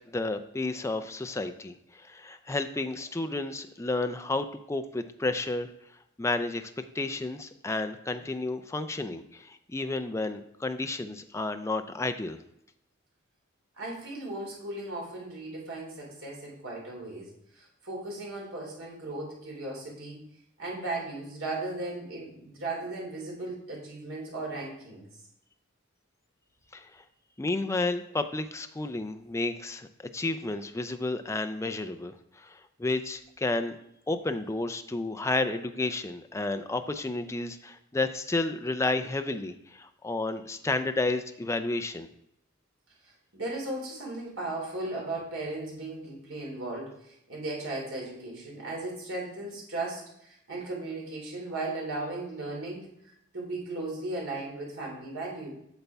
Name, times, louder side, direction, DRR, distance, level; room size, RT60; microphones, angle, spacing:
voice 1, 0.1-5.7 6.2-12.4 26.7-27.0 27.4-33.8 34.1-42.1, left 2 dB, 15° left, 8 dB, 0.4 m, -31 dB
voice 2, 13.8-20.2 20.6-25.0 43.3-52.9 53.3-55.5, right 2 dB, 80° right, -2 dB, 2.8 m, -36 dB
8.2 x 6.8 x 3.4 m, 0.77 s
head